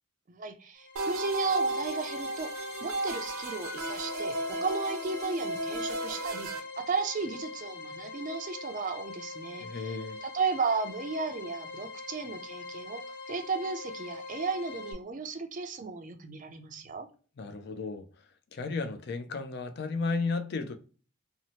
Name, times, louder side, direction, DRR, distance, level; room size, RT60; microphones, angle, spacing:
voice 1, 0.3-2.5 2.8-10.0 10.2-13.0 13.3-17.1, right 4 dB, 40° right, 0.4 m, -34 dB
sound 1, 0.8-14.9, left 3 dB, 70° left, 0.8 m, -43 dB
sound 2, 1.0-6.6, right 1 dB, 90° right, 0.6 m, -34 dB
voice 2, 9.6-10.2 17.4-18.1 18.5-20.8, left 4 dB, 50° left, 0.4 m, -33 dB
2.7 x 2.0 x 2.8 m
head